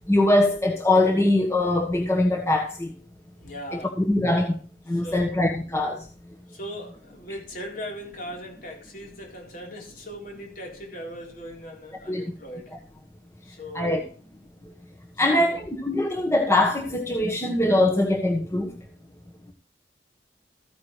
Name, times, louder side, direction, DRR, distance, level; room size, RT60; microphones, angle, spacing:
voice 1, 0.1-2.9 3.7-4.6 4.9-6.0 12.1-12.2 13.7-14.0 15.2-18.7, left 1 dB, 15° left, 1.3 m, -22 dB
voice 2, 3.3-4.0 4.9-5.3 6.5-12.8 13.4-14.1 15.3-15.6, equal, 50° left, 4.0 m, -39 dB
14.5 x 9.5 x 3.3 m
head